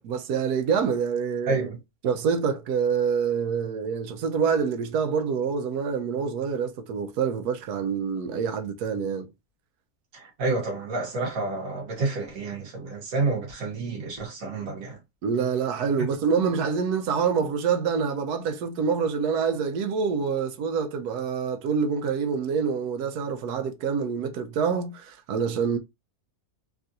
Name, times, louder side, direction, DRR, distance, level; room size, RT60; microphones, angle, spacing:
voice 1, 0.0-1.6 2.0-9.3 15.2-25.8, right 6 dB, 80° right, 1.1 m, -26 dB
voice 2, 1.5-1.8 10.1-15.0, right 3 dB, 60° right, 1.7 m, -29 dB
3.6 x 2.4 x 2.7 m
omnidirectional pair, 1.7 m